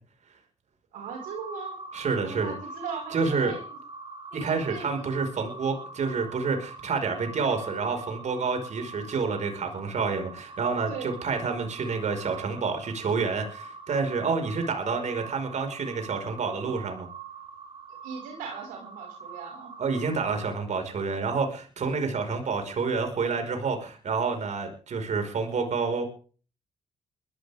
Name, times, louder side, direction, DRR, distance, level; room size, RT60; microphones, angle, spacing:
sound 1, 0.9-20.5, right 4 dB, 45° right, 4.3 m, -43 dB
voice 1, 0.9-1.8 2.2-3.8 4.3-5.1 10.9-11.1 18.0-19.7, right 6 dB, 85° right, 1 dB, 5.6 m, -39 dB
voice 2, 1.9-2.5 3.1-3.6 4.3-17.1 19.8-26.1, right 4 dB, 60° right, 5 dB, 5.2 m, -28 dB
21.0 x 14.5 x 3.6 m, 0.39 s
supercardioid pair, 50°, 13 cm